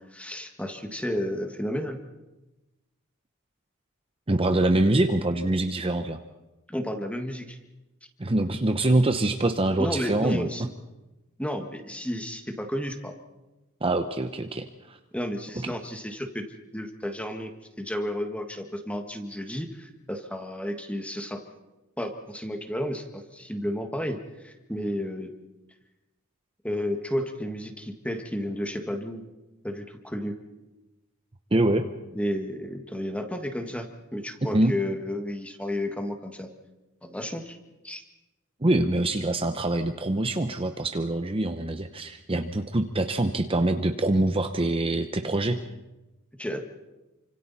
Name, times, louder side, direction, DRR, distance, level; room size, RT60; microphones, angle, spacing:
voice 1, 0.0-2.0 6.7-7.6 9.8-10.7 11.4-13.1 15.1-16.4 16.7-17.5 17.8-21.4 22.0-24.2 24.4-25.3 26.6-29.2 29.6-30.3 32.1-33.9 34.1-36.5 37.0-37.6 37.8-38.0 46.4-46.6, equal, 5° left, 5 dB, 1.7 m, -32 dB
voice 2, 4.3-6.2 8.2-10.5 13.8-15.0 15.6-15.7 31.5-31.9 34.5-34.7 38.6-45.6, right 2 dB, 25° right, 6 dB, 0.8 m, -24 dB
28.5 x 25.5 x 4.2 m, 1.0 s
head